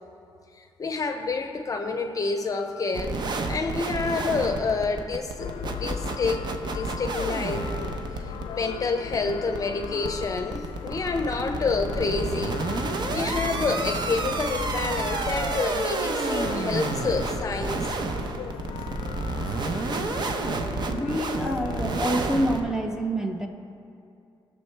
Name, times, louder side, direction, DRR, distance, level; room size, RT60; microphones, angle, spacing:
voice 1, 0.6-3.2 3.5-7.9 8.2-17.9, left 4 dB, 40° left, 6 dB, 0.7 m, -28 dB
sound 1, 2.9-22.6, right 3 dB, 55° right, 0.7 m, -30 dB
sound 2, 5.4-22.6, left 8 dB, 90° left, 0.4 m, -37 dB
voice 2, 20.9-23.5, right 1 dB, 5° right, 4 dB, 0.8 m, -27 dB
16.5 x 6.5 x 3.4 m, 2.5 s
cardioid pair, 110°, 9 cm